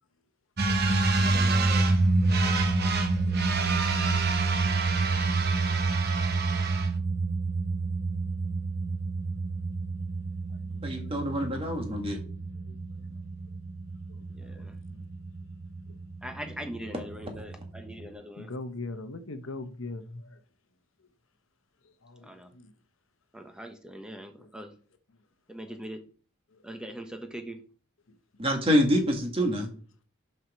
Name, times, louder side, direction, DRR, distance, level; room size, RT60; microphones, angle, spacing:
sound 1, 0.6-18.0, right 3 dB, 50° right, 1.1 m, -28 dB
voice 1, 1.2-1.9 2.3-3.8 14.3-14.7 16.2-18.5 22.2-22.5 23.3-24.7 25.5-26.0 26.6-27.6, equal, 5° right, 1.0 m, -42 dB
voice 2, 3.9-4.2 10.6-11.3 12.7-12.8 13.1-13.2 14.1-14.2 14.5-15.1 18.4-20.4 22.0-22.7 24.4-24.5, left 2 dB, 70° left, 0.9 m, -41 dB
voice 3, 10.8-12.2 28.4-29.7, equal, 25° right, 1.7 m, -26 dB
6.0 x 5.8 x 6.1 m
head